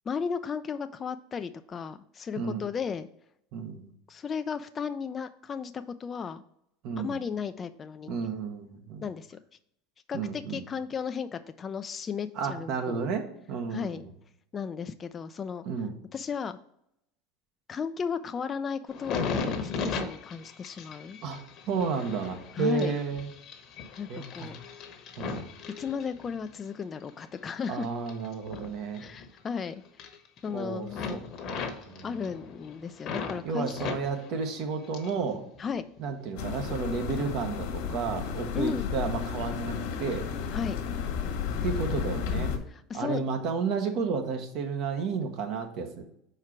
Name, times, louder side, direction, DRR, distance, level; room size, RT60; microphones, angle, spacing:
voice 1, 0.1-3.1 4.1-6.4 7.0-8.3 9.0-9.4 10.1-13.1 13.7-14.0 14.5-15.6 16.1-16.6 17.7-21.2 22.5-22.9 24.0-24.6 25.8-27.9 28.9-29.8 30.4-31.2 32.0-33.9 35.6-35.8 38.5-38.9 40.5-40.8 42.7-43.2, left 6 dB, 30° left, 9 dB, 0.3 m, -35 dB
voice 2, 3.5-3.9 6.8-7.2 8.1-9.0 10.1-10.6 12.4-14.0 15.7-15.9 21.2-21.4 21.7-23.3 24.1-24.5 25.2-25.4 27.7-29.0 30.5-31.2 31.5-32.1 33.4-35.4 36.0-40.3 41.6-42.6 42.9-46.0, right 5 dB, 60° right, 5 dB, 1.1 m, -32 dB
sound 1, 18.9-26.5 27.0-29.6 29.9-30.6 30.9-33.4 33.7-35.3 35.6-36.3 36.8-37.0, left 5 dB, 50° left, 1.0 m, -37 dB
sound 2, 36.4-42.6, left 7 dB, 75° left, 1.5 m, -32 dB
4.8 x 4.4 x 5.8 m, 0.74 s
supercardioid pair, 110°, 0 cm